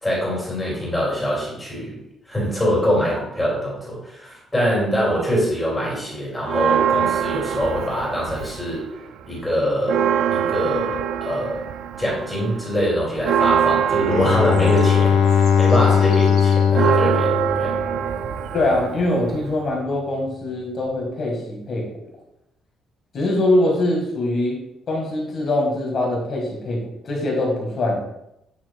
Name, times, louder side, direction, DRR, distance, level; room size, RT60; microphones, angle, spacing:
voice 1, 0.0-2.0 2.3-8.9 9.3-10.0 10.3-11.7 12.0-17.7, equal, 10° left, -5 dB, 2.7 m, -24 dB
Church bell, 6.5-8.8 9.2-9.3 9.6-19.7, right 9 dB, 70° right, 0.4 m, -24 dB
Bowed string instrument, 14.0-18.3, left 7 dB, 70° left, 0.5 m, -19 dB
voice 2, 18.5-21.9 23.1-24.6 24.9-28.0, left 1 dB, 40° left, -1 dB, 2.0 m, -23 dB
8.8 x 5.8 x 2.4 m, 0.82 s
cardioid pair, 170°, 0 cm